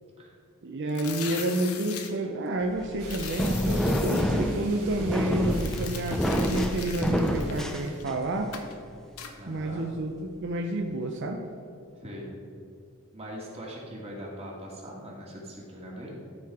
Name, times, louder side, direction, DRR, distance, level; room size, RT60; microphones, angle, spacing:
voice 1, 0.6-8.6 9.5-11.4, right 1 dB, 55° right, 2 dB, 0.6 m, -30 dB
sound 1, 0.9-2.1 3.1-4.2 5.4-8.1 8.5-8.7 9.2-9.3, left 7 dB, 75° left, 0.9 m, -40 dB
sound 2, 2.8-8.4, equal, ahead, 0.5 m, -27 dB
sound 3, 3.0-8.0, right 3 dB, 75° right, 2.0 m, -47 dB
voice 2, 9.4-9.9 11.9-12.3 13.1-16.1, equal, 30° right, -3 dB, 2.1 m, -41 dB
13.0 x 4.7 x 4.8 m, 2.5 s
head